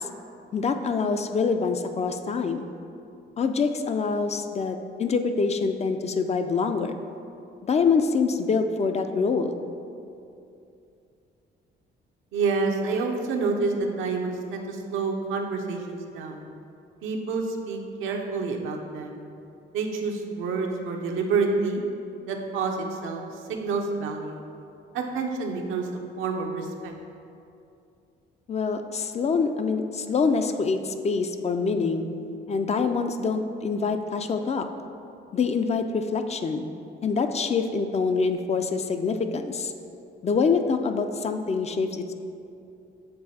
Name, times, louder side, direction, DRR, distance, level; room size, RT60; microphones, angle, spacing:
voice 1, 0.5-2.7 3.4-6.9 7.7-9.6 28.5-32.1 32.5-34.7 35.3-36.7 37.0-39.7 40.2-42.1, left 5 dB, 35° left, 7 dB, 0.4 m, -25 dB
voice 2, 12.3-16.4 17.0-19.2 19.7-21.8 22.3-23.2 23.5-24.4 24.9-26.9, right 4 dB, 85° right, 2 dB, 0.7 m, -28 dB
6.7 x 3.3 x 4.1 m, 2.6 s
cardioid pair, 90°, 20 cm